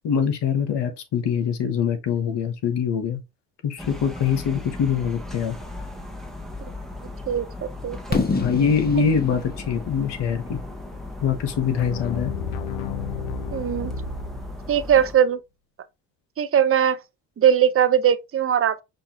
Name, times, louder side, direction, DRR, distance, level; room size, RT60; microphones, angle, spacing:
voice 1, 0.0-3.2 3.6-5.6 8.4-10.6 11.2-12.3, left 7 dB, 70° left, 1.1 m, -23 dB
sound 1, 3.8-15.2, left 2 dB, ahead, 1.0 m, -37 dB
voice 2, 7.3-8.2 8.9-9.0 13.5-13.9 14.7-15.4 16.4-17.0 17.4-18.8, right 9 dB, 30° right, 0.6 m, -20 dB
Fireworks, 8.1-12.0, left 3 dB, 20° left, 1.0 m, -29 dB
sound 2, 11.8-14.9, left 5 dB, 85° left, 0.7 m, -32 dB
5.4 x 2.5 x 2.8 m
supercardioid pair, 50°, 44 cm